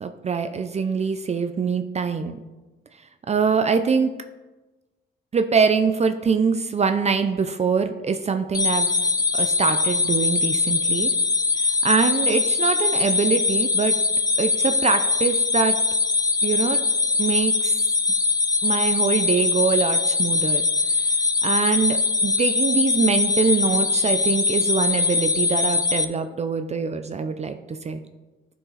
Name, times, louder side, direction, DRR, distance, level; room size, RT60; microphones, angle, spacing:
voice 1, 0.0-2.4 3.3-4.1 5.3-8.9 9.3-11.1 11.6-14.0 14.4-15.8 16.4-16.8 17.2-17.8 18.6-20.6 21.4-28.0, right 5 dB, 35° right, 8 dB, 0.5 m, -23 dB
sound 1, 8.5-26.0, left 4 dB, 20° left, 0.5 m, -22 dB
11.0 x 4.7 x 4.1 m, 1.2 s
cardioid pair, 90°, 20 cm